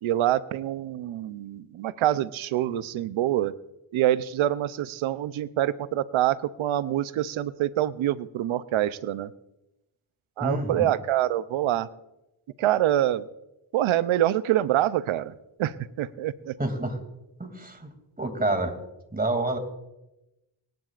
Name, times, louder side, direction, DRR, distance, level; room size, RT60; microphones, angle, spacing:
voice 1, 0.0-3.5 3.9-9.3 10.4-11.9 12.6-13.3 13.7-15.3 15.6-16.5, right 13 dB, 90° right, 16 dB, 0.6 m, -25 dB
voice 2, 10.4-10.9 16.6-17.0 17.4-17.9 18.2-18.7 19.1-19.6, right 2 dB, 20° right, 6 dB, 2.6 m, -28 dB
24.5 x 10.5 x 2.5 m, 0.94 s
cardioid pair, 55°, 47 cm